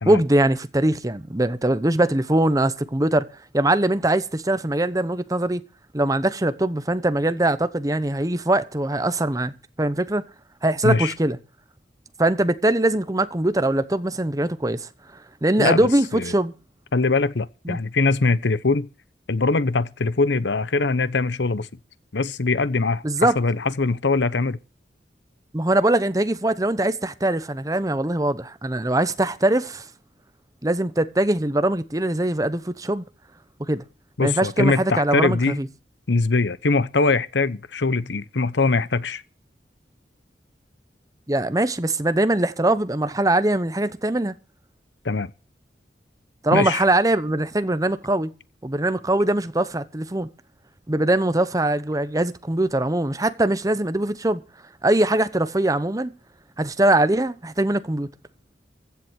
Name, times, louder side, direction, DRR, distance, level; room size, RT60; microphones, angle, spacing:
voice 1, 0.1-3.3 3.5-5.6 5.9-9.5 9.8-10.2 10.6-11.4 12.2-14.9 15.4-16.5 17.7-17.8 23.0-23.3 25.5-29.9 30.6-33.1 33.7-33.8 34.2-35.7 41.3-44.4 46.4-48.3 48.6-50.3 50.9-54.4 54.8-56.1 56.6-58.1, right 1 dB, 20° right, 0.9 m, -22 dB
voice 2, 10.8-11.1 15.6-16.3 16.9-18.9 19.3-21.7 22.1-24.6 34.2-35.6 36.1-39.2 45.0-45.3 46.5-46.8, left 3 dB, 90° left, 0.9 m, -22 dB
15.5 x 7.3 x 8.1 m
head